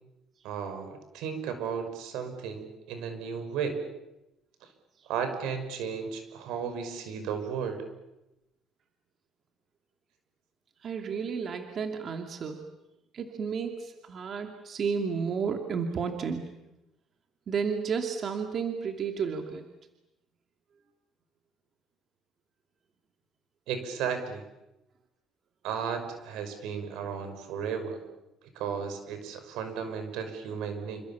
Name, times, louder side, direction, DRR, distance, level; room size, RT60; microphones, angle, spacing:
voice 1, 0.4-3.8 4.6-4.7 5.1-7.8 23.7-24.4 25.6-28.0 28.6-31.0, right 6 dB, 85° right, 8 dB, 5.6 m, -34 dB
voice 2, 10.8-12.6 13.1-16.4 17.5-19.6, right 6 dB, 40° right, 4 dB, 2.6 m, -32 dB
28.5 x 26.5 x 7.3 m, 0.95 s
cardioid pair, 130°, 0 cm